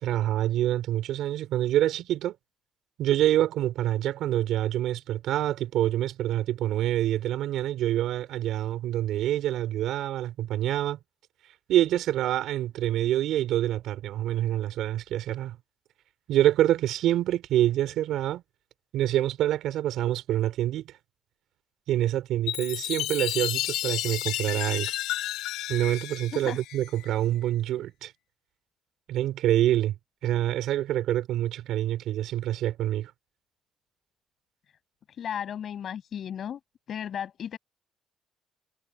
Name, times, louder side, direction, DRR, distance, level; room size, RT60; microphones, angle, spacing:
voice 1, 0.0-2.3 3.0-11.0 11.7-15.6 16.3-18.4 18.9-20.9 21.9-24.9 25.7-28.1 29.1-29.9 30.2-33.1, right 13 dB, 80° right, 3.6 m, -26 dB
Chime, 22.5-27.2, left 14 dB, 85° left, 1.5 m, -32 dB
voice 2, 35.2-36.6 36.9-37.6, left 9 dB, 60° left, 6.0 m, -34 dB
supercardioid pair, 75°, 0 cm